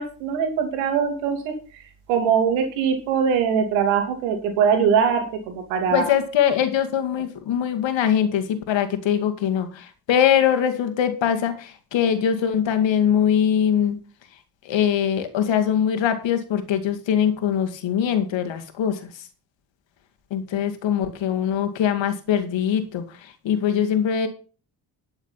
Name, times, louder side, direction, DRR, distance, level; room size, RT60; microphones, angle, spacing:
voice 1, 0.0-1.8 2.1-6.1, right 7 dB, 85° right, 5 dB, 2.9 m, -22 dB
voice 2, 5.9-14.0 14.6-19.1 20.3-24.3, left 9 dB, 60° left, 7 dB, 2.3 m, -22 dB
11.5 x 7.2 x 5.7 m, 0.37 s
supercardioid pair, 65°, 49 cm